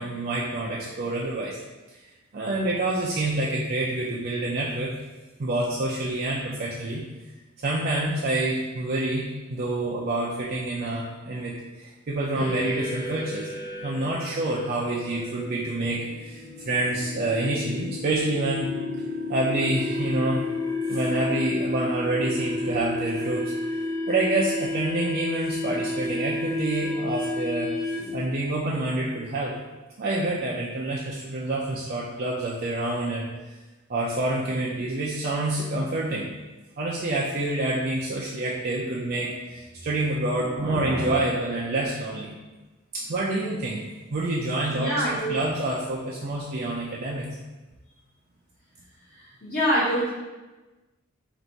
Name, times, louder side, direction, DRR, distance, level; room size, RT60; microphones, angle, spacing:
voice 1, 0.0-1.6 1.9-2.0 2.3-4.9 5.4-7.0 7.6-13.5 13.8-18.8 19.3-20.5 20.9-23.5 24.1-27.7 28.1-29.6 30.0-33.3 33.9-36.3 36.8-42.4 42.9-43.8 44.1-44.9 45.3-47.3, right 2 dB, 45° right, -5 dB, 0.5 m, -27 dB
sound 1, 12.4-28.3, left 2 dB, 25° left, 0.9 m, -31 dB
voice 2, 44.7-45.4 49.1-50.1, equal, 45° left, -11 dB, 1.2 m, -25 dB
4.0 x 2.6 x 4.5 m, 1.1 s
head